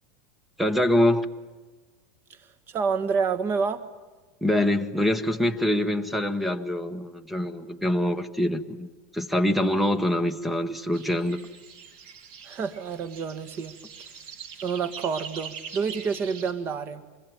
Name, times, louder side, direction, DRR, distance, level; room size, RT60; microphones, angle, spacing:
voice 1, 0.6-1.3 4.4-11.4, left 1 dB, ahead, 1.0 m, -25 dB
voice 2, 2.3-3.9 12.4-13.8 14.6-17.0, right 5 dB, 25° right, 1.6 m, -28 dB
sound 1, 10.9-16.5, right 6 dB, 50° right, 5.7 m, -43 dB
26.0 x 22.0 x 9.2 m
supercardioid pair, 155°, 8 cm